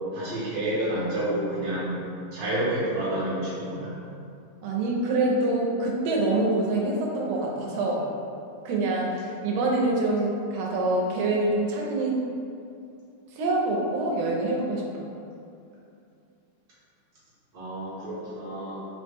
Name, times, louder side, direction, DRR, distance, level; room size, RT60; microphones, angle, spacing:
voice 1, 0.1-2.0 2.3-3.9 17.5-18.9, right 1 dB, 60° right, -11 dB, 1.1 m, -29 dB
voice 2, 4.6-8.1 8.6-12.2 13.4-15.0, right 2 dB, 80° right, -2 dB, 1.4 m, -25 dB
4.2 x 2.1 x 3.3 m, 2.6 s
omnidirectional pair, 2.3 m